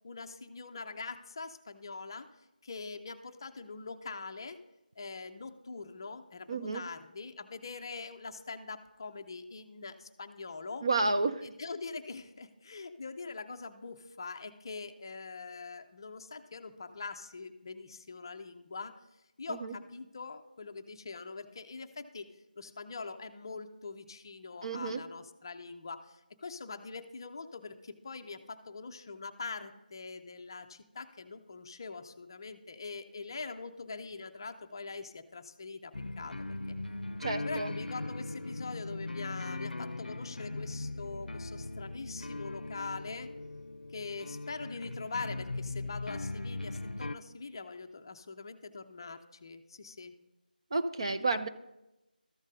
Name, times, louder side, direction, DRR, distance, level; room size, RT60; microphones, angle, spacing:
voice 1, 0.0-2.3 2.6-4.6 5.0-10.9 11.4-18.9 19.4-22.3 22.6-36.5 37.4-43.3 43.9-50.1, left 4 dB, 30° left, 7 dB, 0.5 m, -43 dB
voice 2, 6.5-6.8 10.8-11.4 19.5-19.7 24.6-25.0 37.2-37.7 50.7-51.5, right 3 dB, 35° right, 8 dB, 0.5 m, -31 dB
sound 1, 35.9-47.2, left 2 dB, 80° left, 0.5 m, -39 dB
13.5 x 5.2 x 3.8 m, 0.93 s
figure-of-eight pair, 165°, 5 cm